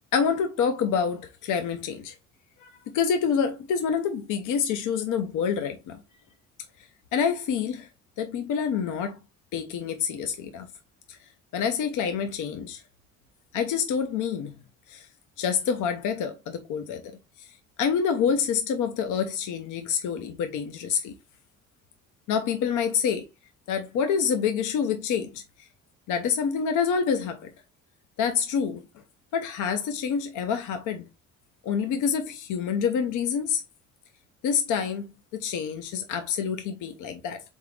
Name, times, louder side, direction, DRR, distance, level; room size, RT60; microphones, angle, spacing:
voice 1, 0.1-2.1 2.6-6.0 6.8-7.9 8.2-9.2 9.5-10.7 11.1-12.8 13.5-14.6 14.9-15.1 15.4-17.1 17.4-21.1 22.3-23.3 23.7-25.7 26.1-27.5 28.2-28.9 29.3-31.1 31.6-33.6 34.4-37.5, left 7 dB, 85° left, 0.6 m, -27 dB
3.8 x 3.6 x 3.1 m
cardioid pair, 90°, 30 cm